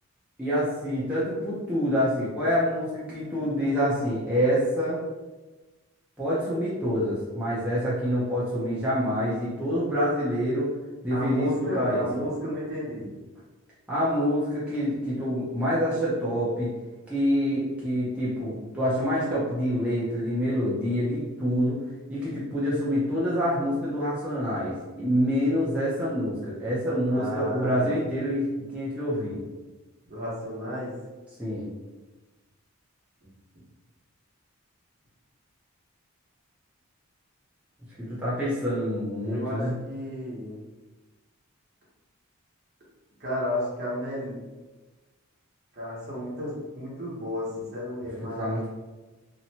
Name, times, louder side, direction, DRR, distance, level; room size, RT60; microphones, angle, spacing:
voice 1, 0.4-5.0 6.2-10.7 11.0-12.0 13.9-16.7 17.1-21.8 22.1-29.4 31.4-31.7 38.0-39.7 48.4-48.7, equal, 5° right, -10 dB, 0.5 m, -26 dB
voice 2, 11.1-13.1 27.1-28.0 30.1-31.0 39.2-40.6 43.2-44.4 45.7-48.7, left 1 dB, 50° right, -6 dB, 1.0 m, -32 dB
2.7 x 2.2 x 2.8 m, 1.2 s
head